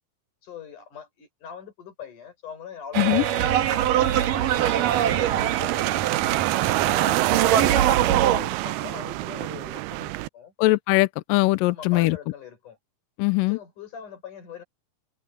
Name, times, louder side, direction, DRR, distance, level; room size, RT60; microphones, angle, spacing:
voice 1, 0.4-6.0 6.8-10.5 11.7-12.8 13.5-14.6, left 7 dB, 50° left, 6.7 m, -42 dB
sound 1, 2.9-8.4, right 10 dB, 65° right, 2.7 m, -23 dB
sound 2, 4.6-10.3, right 21 dB, 80° right, 2.4 m, -26 dB
voice 2, 10.6-12.2 13.2-13.6, left 20 dB, 85° left, 2.0 m, -21 dB
omnidirectional pair, 4.7 m